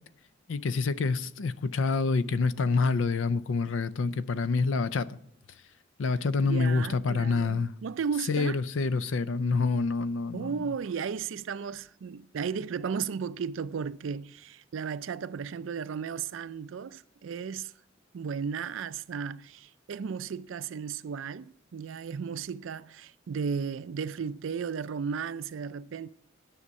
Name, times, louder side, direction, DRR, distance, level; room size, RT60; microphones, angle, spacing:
voice 1, 0.5-5.2 6.0-7.7 8.1-10.8, left 4 dB, 80° left, 0.5 m, -27 dB
voice 2, 6.4-8.6 10.3-17.7 18.1-26.1, right 6 dB, 80° right, 0.4 m, -35 dB
9.8 x 6.5 x 5.3 m
head